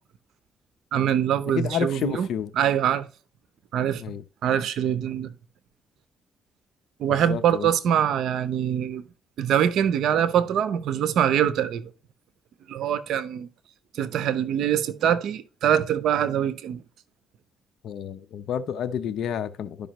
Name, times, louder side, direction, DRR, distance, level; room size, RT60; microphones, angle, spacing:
voice 1, 0.9-2.3 2.6-3.1 3.7-4.0 4.4-5.3 7.0-9.0 9.4-11.9 12.7-13.5 13.9-16.8, right 9 dB, 75° right, 0.7 m, -24 dB
voice 2, 1.5-2.5 4.0-4.2 7.1-7.7 17.8-19.9, left 8 dB, 70° left, 0.6 m, -30 dB
11.0 x 5.3 x 3.0 m
cardioid pair, 90°, 0 cm